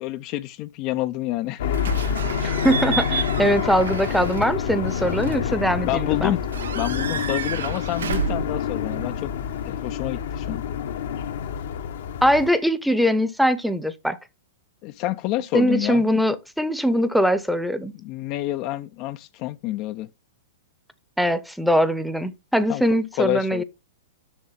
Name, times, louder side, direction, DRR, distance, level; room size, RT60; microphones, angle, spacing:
voice 1, 0.0-1.8 5.8-6.4 6.7-9.3 9.6-10.6 14.8-16.0 17.9-20.1 22.7-22.8 23.2-23.6, left 16 dB, 40° left, 0.5 m, -28 dB
sound 1, 1.6-12.5, left 8 dB, 60° left, 0.9 m, -27 dB
Slam / Squeak / Alarm, 1.7-9.7, right 7 dB, 70° right, 0.6 m, -32 dB
voice 2, 2.4-6.4 12.2-14.2 15.5-17.9 21.2-23.6, equal, ahead, 0.8 m, -22 dB
7.2 x 6.2 x 5.7 m
figure-of-eight pair, 110°, 0 cm